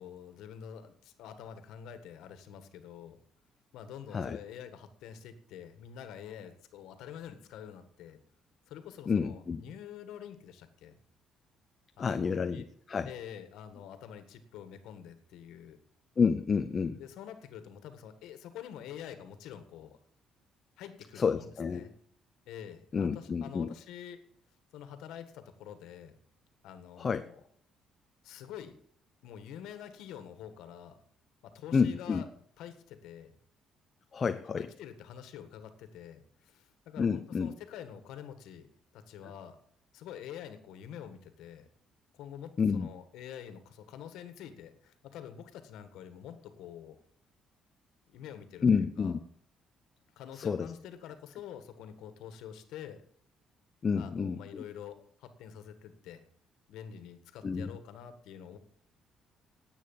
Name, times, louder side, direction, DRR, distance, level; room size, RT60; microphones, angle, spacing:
voice 1, 0.0-3.2 3.7-8.2 8.7-11.0 12.0-12.7 13.1-15.8 17.0-20.0 20.8-21.9 22.5-24.2 24.7-26.1 26.6-27.4 28.2-28.8 29.2-31.0 31.4-32.3 32.6-33.3 34.5-38.7 38.9-39.6 39.9-41.7 42.1-47.0 48.1-49.1 50.2-53.0 53.9-56.2 56.7-58.6, left 9 dB, 85° left, 10 dB, 1.6 m, -47 dB
voice 2, 9.1-9.6 12.0-13.1 16.2-17.0 21.1-21.9 22.9-23.7 27.0-27.2 31.7-32.2 34.1-34.7 37.0-37.5 42.6-42.9 48.6-49.2 50.3-50.7 53.8-54.6 57.4-57.7, left 5 dB, 30° left, 9 dB, 0.6 m, -29 dB
10.5 x 8.6 x 7.3 m, 0.64 s
cardioid pair, 130°, 0 cm